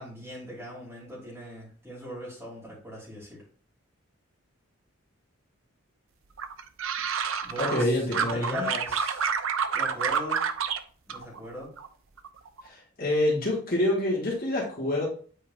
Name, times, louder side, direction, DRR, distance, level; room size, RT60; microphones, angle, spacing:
voice 1, 0.0-3.4 7.4-9.3 9.7-10.5 11.1-11.7, left 1 dB, 10° right, -6 dB, 3.0 m, -39 dB
sound 1, 6.4-7.8 8.1-10.8 11.1-11.9 12.2-12.6, right 6 dB, 70° right, 0.6 m, -29 dB
voice 2, 7.6-8.7 12.6-15.1, left 1 dB, 45° left, -4 dB, 2.1 m, -27 dB
8.5 x 4.5 x 2.5 m, 0.43 s
head